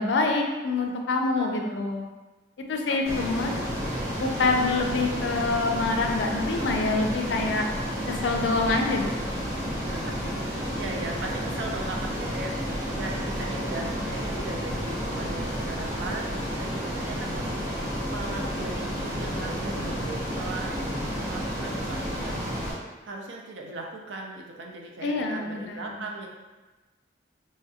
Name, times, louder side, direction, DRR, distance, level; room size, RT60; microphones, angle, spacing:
voice 1, 0.0-2.1 2.7-3.6 4.2-7.7 8.1-9.5 25.0-25.9, left 3 dB, 75° left, 2 dB, 0.4 m, -26 dB
voice 2, 1.4-1.9 2.9-3.6 9.9-10.2 10.5-12.7 12.9-17.5 18.1-20.8 21.1-22.5 23.0-26.3, right 2 dB, 90° right, 0 dB, 0.5 m, -38 dB
Ocean, 3.1-22.7, equal, 60° right, 1.1 m, -31 dB
3.1 x 2.8 x 2.3 m, 1.2 s
head